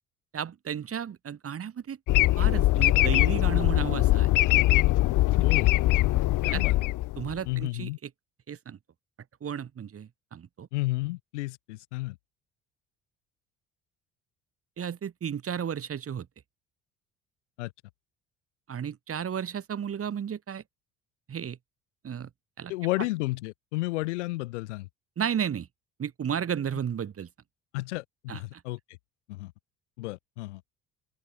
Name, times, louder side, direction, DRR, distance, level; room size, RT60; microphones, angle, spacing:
voice 1, 0.3-2.0 2.4-4.3 6.5-6.6 7.2-8.1 8.5-8.8 9.4-10.7 14.8-16.3 18.7-20.6 21.3-21.6 22.0-22.3 22.6-22.7 25.2-25.7 26.0-27.3 28.3-28.6, right 8 dB, 40° right, 2.0 m, -33 dB
sound 1, 2.1-7.5, left 17 dB, 60° left, 1.3 m, -22 dB
voice 2, 5.4-5.7 6.4-6.8 7.5-8.0 10.7-12.2 17.6-17.7 22.7-24.9 27.7-28.8 29.3-29.5 30.0-30.7, left 20 dB, 85° left, 2.0 m, -32 dB
open air
hypercardioid pair, 60°, 34 cm